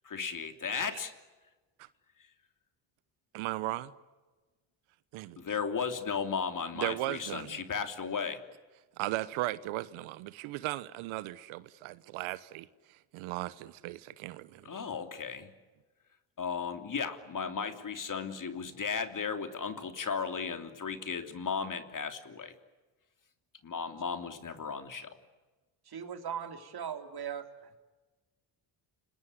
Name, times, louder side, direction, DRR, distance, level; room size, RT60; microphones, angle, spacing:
voice 1, 0.0-1.1 5.4-8.4 14.6-15.5 16.4-22.5 23.6-25.2, left 6 dB, 40° left, 3.1 m, -35 dB
voice 2, 3.3-3.9 5.1-5.4 6.7-7.6 9.0-12.7 13.1-14.7, right 17 dB, 80° right, 1.1 m, -36 dB
voice 3, 25.9-27.5, right 8 dB, 50° right, 3.7 m, -38 dB
30.0 x 20.0 x 9.6 m
supercardioid pair, 70°, 48 cm